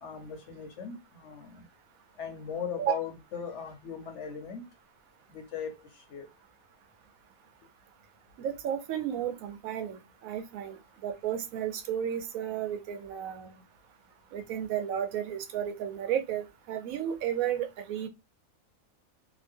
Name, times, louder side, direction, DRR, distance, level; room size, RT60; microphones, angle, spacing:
voice 1, 0.0-1.6 2.2-4.7 5.3-5.7 6.1-6.3, left 7 dB, 65° left, 0.9 m, -38 dB
voice 2, 8.4-10.8 11.0-13.5 14.3-18.1, right 9 dB, 80° right, 1.0 m, -33 dB
2.8 x 2.1 x 3.4 m
omnidirectional pair, 1.4 m